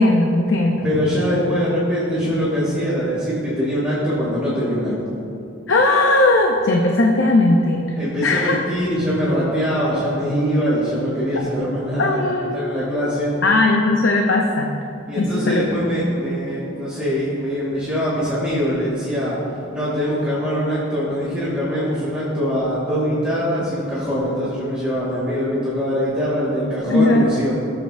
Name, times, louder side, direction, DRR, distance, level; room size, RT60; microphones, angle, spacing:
voice 1, 0.0-0.9 5.7-7.9 8.2-8.6 12.0-12.6 13.4-14.8 15.2-15.8 26.9-27.3, left 2 dB, 70° left, 1 dB, 0.7 m, -17 dB
voice 2, 0.8-5.1 8.0-13.3 15.1-19.4 19.7-27.5, equal, 5° right, -10 dB, 2.4 m, -22 dB
18.0 x 7.4 x 2.6 m, 2.6 s
head